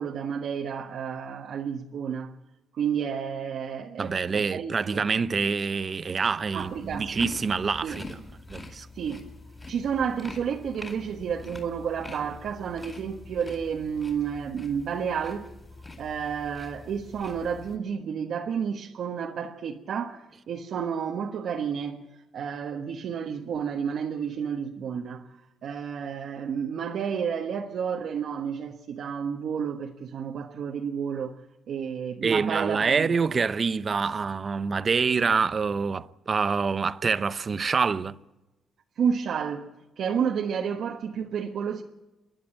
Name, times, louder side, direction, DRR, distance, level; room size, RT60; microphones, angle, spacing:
voice 1, 0.0-2.3 2.7-5.1 6.5-7.1 7.8-8.0 8.9-9.3 9.7-15.5 16.0-22.0 22.3-25.3 25.6-31.3 31.7-33.2 39.0-39.7 40.0-41.8, right 7 dB, 65° right, 1.3 m, -31 dB
voice 2, 4.0-8.1 8.5-8.9 32.2-38.2, right 5 dB, 35° right, 0.6 m, -26 dB
sound 1, 6.5-17.8, left 3 dB, 15° left, 4.4 m, -44 dB
28.5 x 11.0 x 8.5 m
cardioid pair, 120°, 0 cm